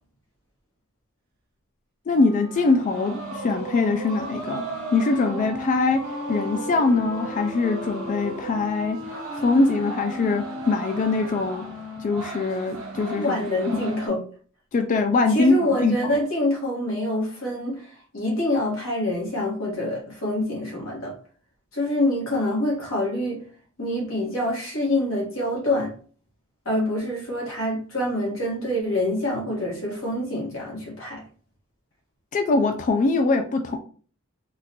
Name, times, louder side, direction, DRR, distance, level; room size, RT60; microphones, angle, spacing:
voice 1, 2.1-4.6 4.9-6.0 6.3-9.0 9.4-11.6 12.0-13.8 14.7-16.2 32.3-33.8, left 3 dB, 40° left, 0.3 m, -22 dB
Wind instrument woodwind instrument, 2.1-14.2, left 1 dB, 50° right, 0.7 m, -38 dB
sound 1, 2.5-14.1, right 2 dB, 75° right, 1.1 m, -37 dB
voice 2, 13.2-14.2 15.3-21.1 21.7-23.4 23.8-25.9 26.6-31.2, left 1 dB, 70° left, 1.5 m, -26 dB
3.6 x 2.4 x 2.8 m
head